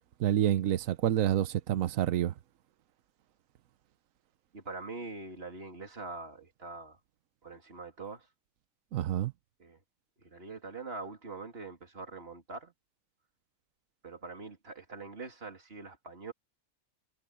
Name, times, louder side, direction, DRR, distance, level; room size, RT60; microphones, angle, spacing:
voice 1, 0.2-2.3 8.9-9.3, right 11 dB, 75° right, 1.2 m, -28 dB
voice 2, 4.5-7.0 7.4-8.3 9.6-9.8 10.2-12.7 14.0-16.3, right 3 dB, 45° right, 3.3 m, -43 dB
omnidirectional pair, 1.4 m